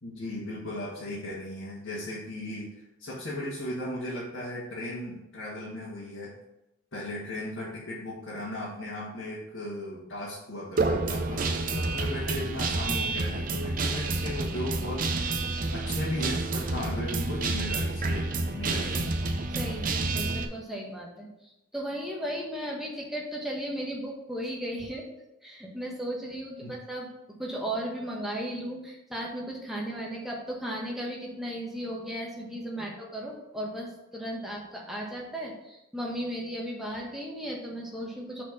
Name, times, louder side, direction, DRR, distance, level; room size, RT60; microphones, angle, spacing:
voice 1, 0.0-2.7 3.0-6.3 6.9-15.0 15.4-19.1 26.6-26.8 32.8-32.9, left 1 dB, 70° left, -8 dB, 1.8 m, -36 dB
Guitar, 10.8-20.4, right 3 dB, 40° right, 0.6 m, -29 dB
voice 2, 19.5-25.0 25.4-38.4, right 1 dB, ahead, -3 dB, 1.2 m, -35 dB
6.1 x 4.4 x 5.2 m, 0.90 s
head